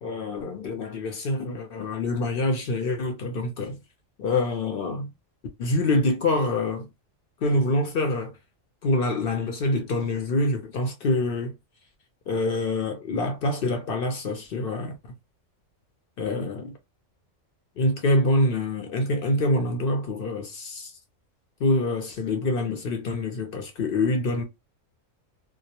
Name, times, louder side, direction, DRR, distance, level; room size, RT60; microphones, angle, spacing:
voice 1, 0.0-3.8 4.2-5.1 5.6-6.9 7.4-8.3 8.8-11.5 12.3-15.0 16.2-16.8 17.8-20.9 21.6-24.4, left 2 dB, 60° left, 0.6 m, -25 dB
2.2 x 2.0 x 2.8 m
omnidirectional pair, 1.4 m